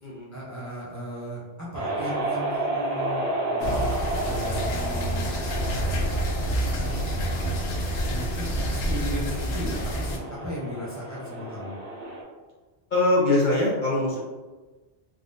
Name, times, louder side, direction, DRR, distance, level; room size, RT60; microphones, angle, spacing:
voice 1, 0.3-6.7 8.1-11.7, equal, 20° right, -7 dB, 0.6 m, -36 dB
sound 1, 1.7-12.2, right 2 dB, 70° right, 1.0 m, -32 dB
sound 2, 3.6-10.2, equal, 90° left, 0.9 m, -28 dB
voice 2, 12.9-14.2, left 2 dB, 50° left, -5 dB, 0.7 m, -22 dB
3.6 x 2.3 x 2.6 m, 1.3 s
omnidirectional pair, 1.2 m